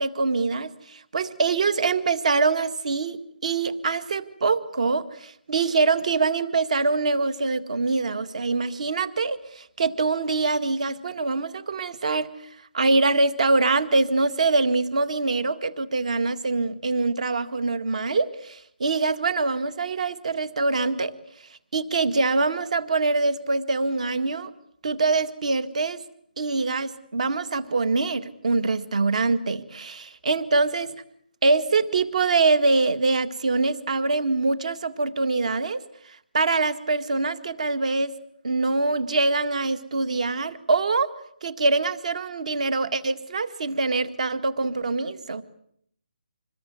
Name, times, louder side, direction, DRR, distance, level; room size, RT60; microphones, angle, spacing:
voice 1, 0.0-12.3 12.7-21.1 21.7-24.5 24.8-26.0 26.4-30.9 31.4-35.8 36.3-38.2 38.4-41.1 41.4-45.4, right 3 dB, 45° right, 15 dB, 1.9 m, -24 dB
26.5 x 21.5 x 9.5 m, 0.68 s
hypercardioid pair, 175°, 5 cm